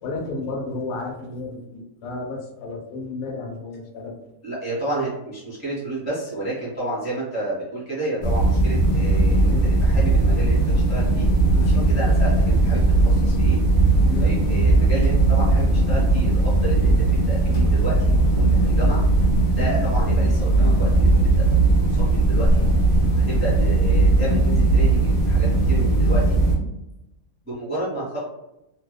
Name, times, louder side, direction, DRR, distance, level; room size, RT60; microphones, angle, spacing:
voice 1, 0.0-4.1 11.5-11.9 14.1-14.3 19.6-19.7, left 2 dB, 85° left, 1 dB, 1.1 m, -32 dB
voice 2, 4.4-10.6 10.9-11.3 11.6-13.6 14.2-19.0 19.6-21.4 21.8-22.6 23.3-26.4 27.4-28.2, right 2 dB, 10° right, -8 dB, 0.5 m, -31 dB
sound 1, 8.2-26.5, right 2 dB, 65° left, 0.5 m, -18 dB
2.7 x 2.1 x 2.2 m, 0.90 s
omnidirectional pair, 1.7 m